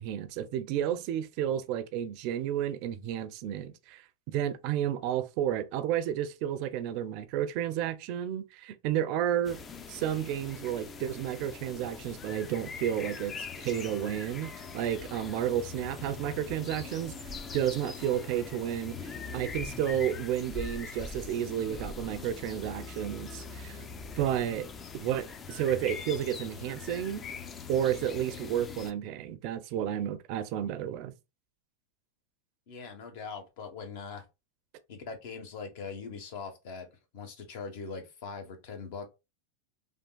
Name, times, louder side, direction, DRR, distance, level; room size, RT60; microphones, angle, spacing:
voice 1, 0.0-9.6 9.9-17.1 17.5-23.8 24.2-24.7 24.9-27.2 27.7-31.1, right 10 dB, 55° right, 0.4 m, -31 dB
sound 1, 9.4-28.9, left 5 dB, 25° left, 0.4 m, -42 dB
voice 2, 32.7-34.3 34.9-36.9 37.1-39.1, left 5 dB, 65° left, 1.0 m, -41 dB
3.5 x 2.4 x 2.2 m
supercardioid pair, 125°, 0 cm